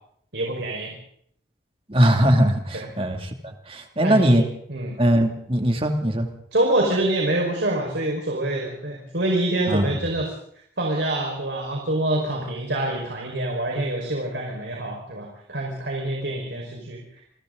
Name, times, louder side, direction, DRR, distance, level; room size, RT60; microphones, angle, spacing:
voice 1, 0.3-0.9 2.7-2.9 4.0-4.4 4.7-4.9 6.5-10.3 10.8-17.2, right 1 dB, 80° right, -1 dB, 5.1 m, -26 dB
voice 2, 1.9-3.3 3.7-4.4 5.0-6.3 9.7-10.0, equal, 30° right, 4 dB, 2.6 m, -20 dB
29.0 x 24.0 x 4.0 m, 0.66 s
head